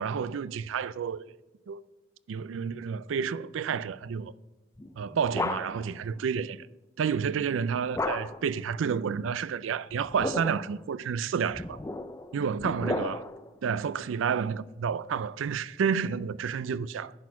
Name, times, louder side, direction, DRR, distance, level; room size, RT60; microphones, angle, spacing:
voice 1, 0.0-1.3 1.7-1.8 2.3-4.3 5.0-6.7 7.0-11.8 12.3-13.2 13.6-17.1, right 6 dB, 85° right, 0.4 m, -30 dB
sound 1, 4.8-6.0 7.9-8.6 9.9-10.8 11.5-13.5, left 2 dB, 15° left, 0.3 m, -34 dB
10.5 x 4.3 x 5.8 m
head